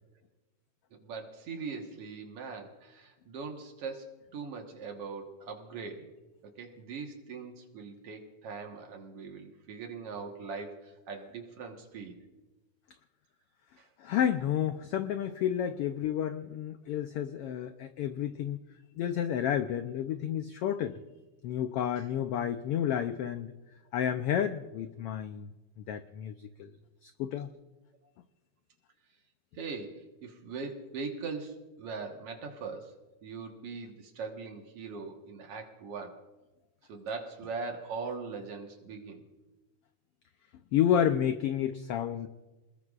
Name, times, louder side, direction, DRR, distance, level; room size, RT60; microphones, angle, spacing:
voice 1, 1.0-6.1 6.6-12.2 13.8-13.9 29.6-32.9 33.2-36.2 36.9-39.2, right 4 dB, 55° right, 3 dB, 2.2 m, -41 dB
voice 2, 14.0-18.6 19.0-21.0 21.4-23.5 23.9-25.5 25.8-26.3 26.6-26.7 27.0-27.5 40.7-42.3, left 9 dB, 85° left, 8 dB, 1.3 m, -30 dB
27.5 x 20.0 x 2.5 m, 1.2 s
omnidirectional pair, 3.4 m